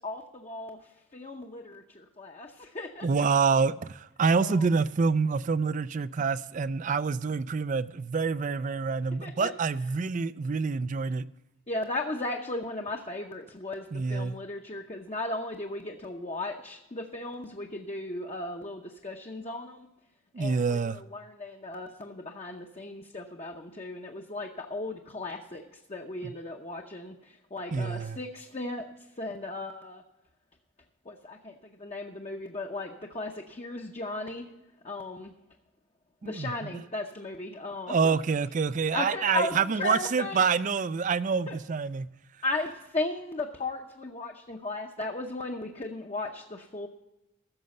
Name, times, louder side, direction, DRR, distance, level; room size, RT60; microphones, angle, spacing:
voice 1, 0.0-3.2 4.3-4.7 9.2-9.5 11.7-19.9 20.4-28.8 29.2-30.0 31.0-34.5 34.8-35.3 36.2-38.2 38.9-40.4 41.5-41.6 42.4-46.9, left 2 dB, 30° left, 0.7 m, -36 dB
voice 2, 3.0-11.2 13.9-14.4 20.3-21.0 26.2-26.3 27.7-28.2 36.2-36.8 37.9-42.1, right 5 dB, 35° right, 0.4 m, -27 dB
14.5 x 6.8 x 5.4 m
head